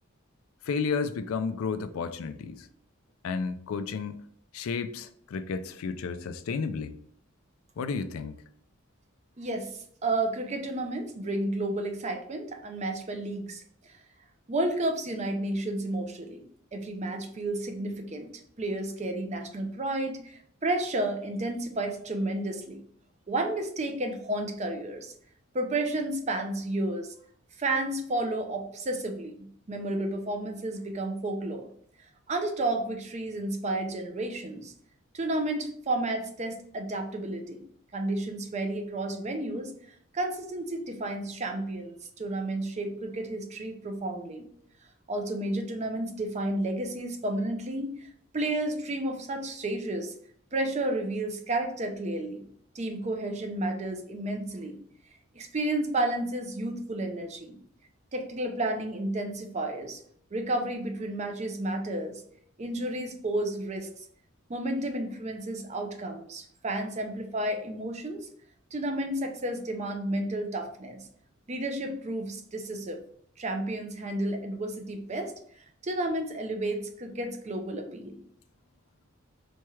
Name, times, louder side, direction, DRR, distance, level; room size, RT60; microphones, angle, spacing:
voice 1, 0.7-2.7 3.2-4.2 4.5-7.0 7.8-8.4, left 5 dB, 80° left, 0.3 m, -32 dB
voice 2, 9.4-14.0 14.5-16.4 16.7-18.3 18.6-22.8 23.3-25.1 25.5-27.1 27.6-31.7 32.3-34.7 35.1-37.6 37.9-39.7 40.1-44.5 45.1-50.1 50.5-52.4 52.7-54.8 55.3-57.6 58.1-60.0 60.3-62.2 62.6-64.0 64.5-68.3 68.7-71.1 71.5-73.0 73.4-75.3 75.8-78.2, right 1 dB, 30° right, 0.5 m, -31 dB
4.3 x 2.3 x 3.1 m
head